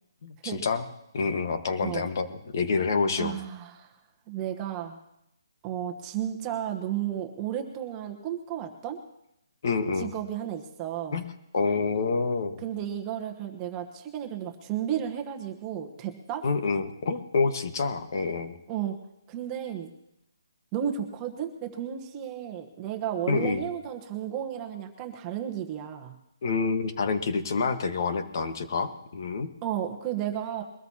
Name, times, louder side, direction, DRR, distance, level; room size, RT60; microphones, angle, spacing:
voice 1, 0.2-0.8 1.1-3.3 9.6-10.1 11.1-12.6 16.4-18.6 23.3-23.6 26.4-29.5, left 4 dB, 50° left, 8 dB, 1.5 m, -27 dB
voice 2, 3.2-3.9 4.3-5.0 5.6-9.0 10.0-11.2 12.6-16.4 18.7-19.0 19.3-19.9 20.7-26.2 29.6-30.6, right 10 dB, 20° right, 3 dB, 1.1 m, -33 dB
22.5 x 13.5 x 2.9 m, 0.81 s
hypercardioid pair, 160°, 2 cm